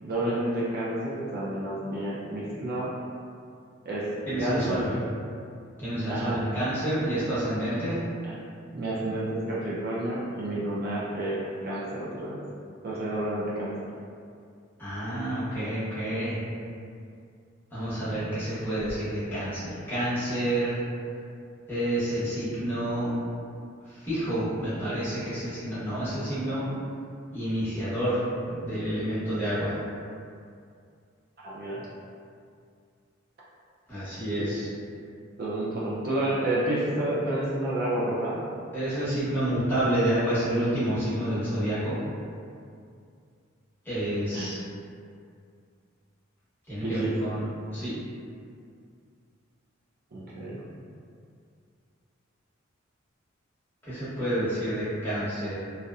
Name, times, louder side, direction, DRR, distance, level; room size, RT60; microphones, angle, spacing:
voice 1, 0.0-2.9 3.8-4.1 4.4-4.8 6.1-6.4 8.3-8.4 8.7-12.4 12.8-13.7 31.4-31.9 34.4-34.5 35.4-38.4 44.3-44.5 46.8-47.1 50.1-50.6, right 1 dB, 50° right, -7 dB, 0.4 m, -30 dB
voice 2, 4.3-4.9 5.8-8.0 14.8-16.4 17.7-20.8 21.7-23.1 23.9-26.6 27.3-28.2 28.5-29.8 33.9-34.7 38.7-42.0 43.8-44.6 46.7-47.4 47.7-47.9 53.8-55.6, right 1 dB, 10° left, -13 dB, 0.9 m, -29 dB
2.6 x 2.1 x 2.3 m, 2.3 s
head